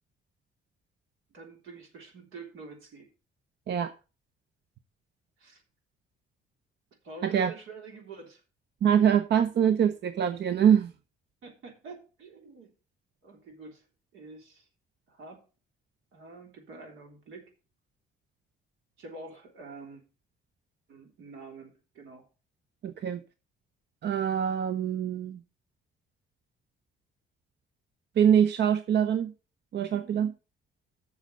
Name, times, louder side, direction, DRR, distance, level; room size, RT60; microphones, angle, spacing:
voice 1, 1.3-3.1 5.4-5.6 7.0-8.4 11.4-12.7 13.2-13.8 14.1-14.7 15.1-15.4 16.1-17.5 19.0-20.0 20.9-22.2, right 4 dB, 85° right, 1 dB, 3.4 m, -46 dB
voice 2, 8.8-10.9 22.8-23.2 24.0-25.4 28.2-29.3 29.7-30.3, right 8 dB, 60° right, 10 dB, 0.7 m, -24 dB
7.2 x 6.4 x 6.5 m, 0.34 s
cardioid pair, 90°, 20 cm